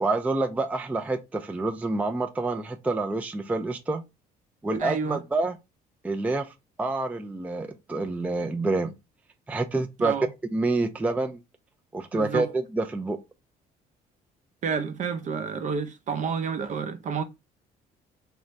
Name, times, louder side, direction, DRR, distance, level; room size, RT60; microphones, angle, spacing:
voice 1, 0.0-4.0 4.6-5.6 6.0-6.5 6.8-8.9 9.5-10.1 10.5-11.4 11.9-13.2, right 2 dB, 10° right, 0.4 m, -27 dB
voice 2, 4.8-5.2 10.0-10.3 12.1-12.5 14.6-17.2, right 6 dB, 45° right, 0.7 m, -30 dB
3.1 x 2.6 x 4.5 m
cardioid pair, 110°, 17 cm